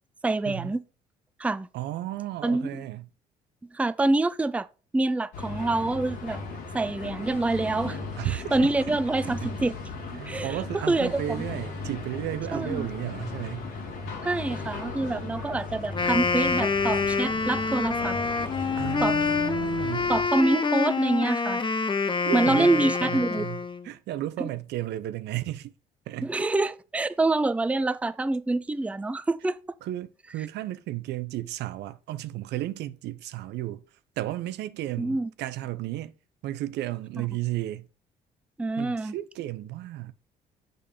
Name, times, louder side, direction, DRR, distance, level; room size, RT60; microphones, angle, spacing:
voice 1, 0.2-0.8 1.4-1.7 2.4-2.8 3.7-4.7 4.9-6.4 6.7-8.0 8.2-9.7 10.1-11.4 12.5-12.9 14.2-18.2 19.0-19.2 20.1-21.6 22.3-23.5 24.4-24.5 26.2-29.6 35.0-35.3 38.6-39.1, right 2 dB, 5° right, 0.4 m, -26 dB
voice 2, 1.7-3.1 8.2-8.7 9.2-9.6 10.1-13.7 18.8-20.1 22.3-25.7 26.1-26.3 29.8-33.8 34.2-36.1 36.4-37.9 38.8-40.1, right 14 dB, 65° right, 0.6 m, -33 dB
sound 1, 5.3-20.3, left 4 dB, 70° left, 2.8 m, -37 dB
Wind instrument woodwind instrument, 15.8-23.9, left 4 dB, 25° left, 0.8 m, -27 dB
6.6 x 5.3 x 5.1 m
hypercardioid pair, 55°, 19 cm